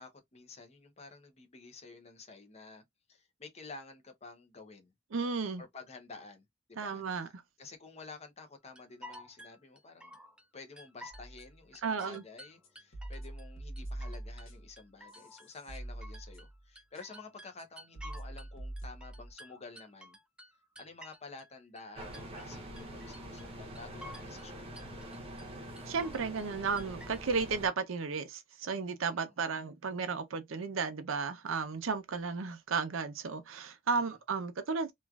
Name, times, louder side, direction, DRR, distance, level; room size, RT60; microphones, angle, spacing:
voice 1, 0.0-2.8 3.1-4.9 5.6-7.3 7.6-10.2 10.5-20.2 20.8-24.6 29.1-29.2 33.9-34.1, left 3 dB, 30° left, 0.7 m, -51 dB
voice 2, 5.1-5.6 6.8-7.3 11.8-12.2 25.9-34.9, right 5 dB, 75° right, 0.6 m, -34 dB
sound 1, 8.8-10.4 10.8-11.5 11.8-13.5 13.8-14.5 14.8-16.5 16.8-18.5 18.8-21.5 21.8-22.5 22.8-23.5 23.8-24.5 24.8-25.5 25.8-26.5 26.8-27.5, equal, 5° right, 0.4 m, -52 dB
sound 2, 11.1-11.6 12.0-12.1 12.6-14.8 15.1-16.6 16.9-17.0 17.6-17.7 17.9-19.3, right 1 dB, 70° left, 1.3 m, -44 dB
sound 3, 22.0-27.7, right 1 dB, 30° right, 0.7 m, -45 dB
3.0 x 2.4 x 2.3 m
head